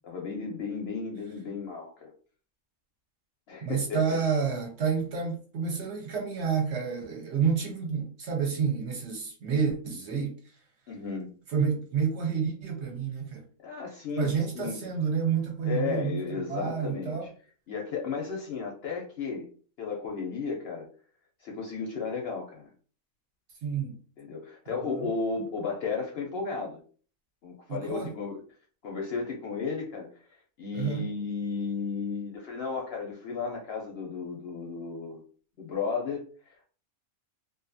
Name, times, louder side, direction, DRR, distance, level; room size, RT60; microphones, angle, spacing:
voice 1, 0.0-2.1 3.5-4.0 10.9-11.3 13.6-14.8 15.6-17.3 17.7-19.5 19.8-20.9 21.4-22.7 24.2-26.8 27.4-28.4 28.8-30.1 30.6-35.2 35.6-36.6, left 5 dB, 65° left, 0.6 m, -34 dB
voice 2, 3.6-10.4 11.5-13.4 14.2-17.3 23.6-24.0 24.7-25.1 27.7-28.1 30.7-31.0, right 6 dB, 60° right, 0.8 m, -29 dB
2.5 x 2.3 x 2.5 m
omnidirectional pair, 1.5 m